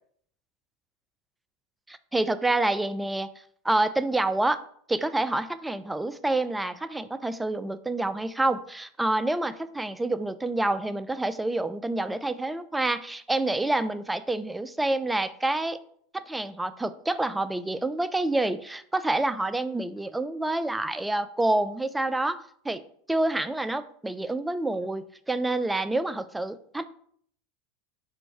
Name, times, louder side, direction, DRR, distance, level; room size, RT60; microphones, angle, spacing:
voice 1, 1.9-3.3 3.6-4.6 4.9-15.8 16.1-22.8 23.1-26.9, right 2 dB, 10° right, 13 dB, 0.3 m, -28 dB
4.5 x 2.6 x 4.5 m, 0.62 s
hypercardioid pair, 90°, 0 cm